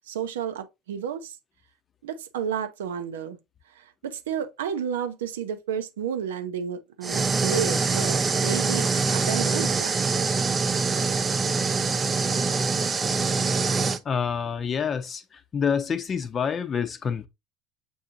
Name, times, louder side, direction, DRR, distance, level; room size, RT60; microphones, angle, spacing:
voice 1, 0.1-1.4 2.0-3.4 3.7-9.9, right 8 dB, 85° right, 0.6 m, -31 dB
sound 1, 7.0-14.0, right 4 dB, 25° right, 0.5 m, -24 dB
voice 2, 14.0-17.3, left 6 dB, 35° left, 0.6 m, -27 dB
6.9 x 2.6 x 2.6 m
hypercardioid pair, 80°, 0 cm